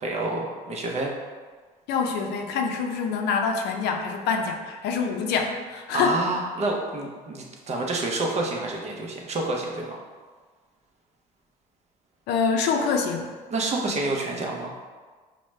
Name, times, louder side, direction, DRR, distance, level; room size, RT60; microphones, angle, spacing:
voice 1, 0.0-1.1 5.9-10.0 13.5-14.7, right 2 dB, 40° right, 0 dB, 0.7 m, -28 dB
voice 2, 1.9-6.2 12.3-13.3, left 5 dB, 80° left, 3 dB, 0.5 m, -25 dB
4.7 x 2.2 x 3.1 m, 1.5 s
cardioid pair, 110°, 17 cm